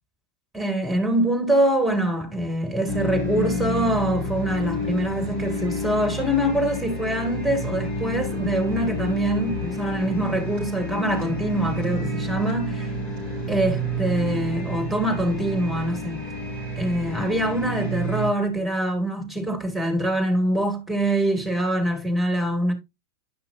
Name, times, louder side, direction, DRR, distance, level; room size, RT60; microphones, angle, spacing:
voice 1, 0.5-12.7 13.5-16.3 16.8-22.7, right 1 dB, 5° right, 2.2 m, -24 dB
sound 1, 2.9-18.3, equal, 45° left, 5.1 m, -29 dB
10.5 x 5.6 x 2.6 m
figure-of-eight pair, 90°, 0 cm